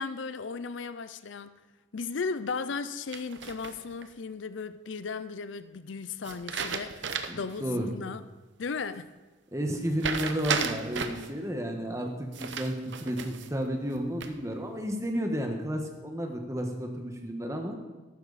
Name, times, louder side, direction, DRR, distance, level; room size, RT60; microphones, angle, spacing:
voice 1, 0.0-1.5 1.9-6.9 7.3-8.2 8.6-9.1, left 4 dB, 70° left, 13 dB, 0.5 m, -36 dB
sound 1, 3.1-4.0 6.2-7.5 7.9-8.0 10.0-11.3 12.3-13.5 13.9-14.5, right 5 dB, 65° right, 0.9 m, -34 dB
voice 2, 7.3-7.9 9.5-17.8, equal, 15° right, 3 dB, 1.3 m, -32 dB
14.0 x 12.0 x 4.1 m, 1.2 s
head